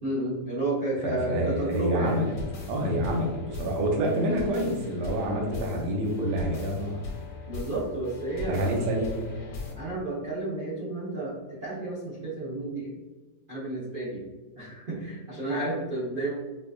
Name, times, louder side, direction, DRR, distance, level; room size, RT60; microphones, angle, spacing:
voice 1, 0.0-2.2 7.5-8.9 9.8-12.9 13.5-14.2 14.6-16.4, right 2 dB, 55° right, -8 dB, 0.6 m, -31 dB
voice 2, 1.0-2.3 2.7-7.1 8.5-9.1, right 1 dB, 70° right, 0 dB, 1.2 m, -27 dB
sound 1, 1.7-9.7, left 4 dB, 55° left, 1.1 m, -39 dB
4.7 x 2.4 x 2.3 m, 1.2 s
omnidirectional pair, 2.0 m